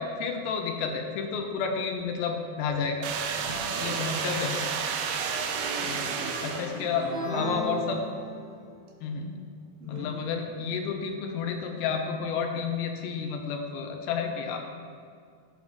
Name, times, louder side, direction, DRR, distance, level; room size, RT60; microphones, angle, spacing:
voice 1, 0.0-3.0 3.8-4.6 5.8-6.1 6.4-8.0 9.0-9.4 9.8-14.6, left 5 dB, 85° left, 3 dB, 2.5 m, -31 dB
sound 1, 3.0-7.1, right 6 dB, 90° right, 1.9 m, -31 dB
voice 2, 3.3-4.3 6.0-7.8 9.8-10.4, right 2 dB, 65° right, -4 dB, 3.0 m, -43 dB
sound 2, 7.0-8.8, right 2 dB, 35° right, 1.6 m, -35 dB
12.5 x 7.1 x 2.4 m, 2.2 s
omnidirectional pair, 4.4 m